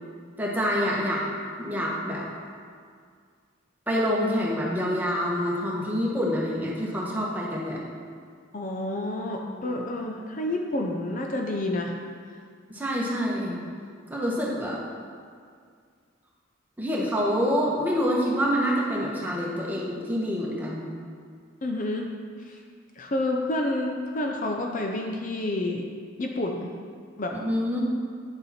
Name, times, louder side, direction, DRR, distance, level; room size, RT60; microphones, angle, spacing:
voice 1, 0.4-1.3 1.6-2.3 3.9-7.8 9.4-9.8 12.7-13.6 14.1-14.8 16.8-20.9 27.4-27.8, equal, 10° right, -4 dB, 1.3 m, -27 dB
voice 2, 8.5-11.9 21.6-22.1 22.5-22.6 23.0-25.8 26.2-26.7 27.2-27.4, left 1 dB, 40° left, 1 dB, 0.6 m, -29 dB
9.9 x 6.7 x 4.3 m, 2.1 s
head